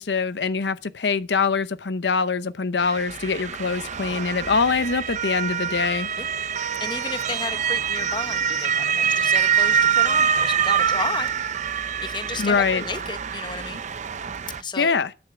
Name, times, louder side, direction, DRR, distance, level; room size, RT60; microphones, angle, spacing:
voice 1, 0.0-6.1 12.4-12.8 14.8-15.1, left 5 dB, 70° left, 0.7 m, -23 dB
Motor vehicle (road) / Siren, 2.8-14.6, right 7 dB, 45° right, 0.6 m, -25 dB
voice 2, 6.8-11.3 12.0-13.8 14.6-15.0, left 4 dB, 25° left, 0.8 m, -33 dB
11.5 x 10.0 x 6.0 m
head